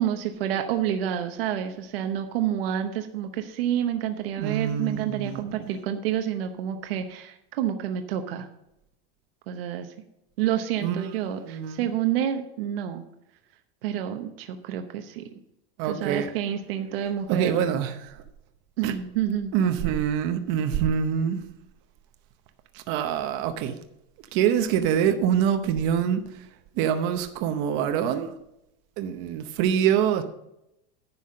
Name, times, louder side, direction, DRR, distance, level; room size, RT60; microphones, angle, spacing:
voice 1, 0.0-8.5 9.5-9.9 10.4-13.0 13.8-15.3 15.8-17.6 18.8-19.5, right 10 dB, 80° right, 6 dB, 1.0 m, -28 dB
voice 2, 4.4-5.8 10.8-11.0 11.4-11.9 15.8-16.3 17.3-18.2 18.8-19.0 19.5-21.4 22.7-23.8 24.3-26.5 26.7-28.4 29.0-30.2, right 9 dB, 45° right, 8 dB, 0.8 m, -25 dB
10.0 x 5.7 x 6.4 m, 0.85 s
supercardioid pair, 160°, 29 cm